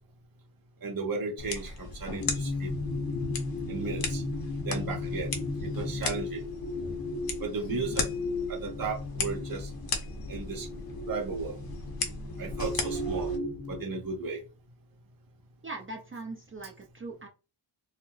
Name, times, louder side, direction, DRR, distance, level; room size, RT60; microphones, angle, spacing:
voice 1, 0.8-2.7 3.7-4.2 4.6-5.3 5.6-6.4 7.4-8.1 8.5-9.7 10.3-10.7 11.1-11.6 12.4-13.3 13.7-14.4, right 4 dB, 45° right, -1 dB, 1.1 m, -35 dB
sound 1, 1.4-13.4, left 4 dB, 50° left, 0.8 m, -37 dB
sound 2, 2.1-13.8, left 2 dB, 85° left, 1.5 m, -35 dB
voice 2, 15.6-17.3, right 3 dB, 25° right, 0 dB, 0.6 m, -41 dB
4.2 x 2.0 x 2.5 m, 0.30 s
wide cardioid pair, 135°, 47 cm